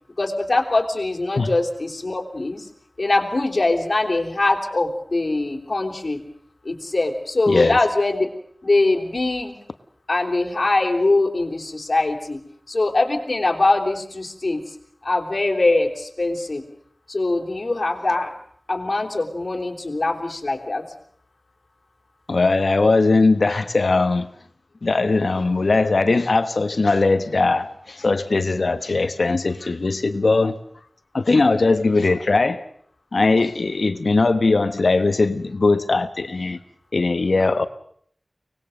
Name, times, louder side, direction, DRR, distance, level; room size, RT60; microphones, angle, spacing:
voice 1, 0.2-2.7 3.0-6.2 6.7-8.3 8.6-9.6 10.1-12.4 12.7-14.6 15.0-16.6 17.1-18.3 18.7-20.8, left 2 dB, 60° left, 3.6 m, -22 dB
voice 2, 7.5-7.8 22.3-24.3 24.8-30.6 31.1-32.6 33.1-36.6 36.9-37.7, left 3 dB, 80° left, 1.2 m, -19 dB
24.0 x 19.5 x 6.6 m
wide cardioid pair, 45°, 0 cm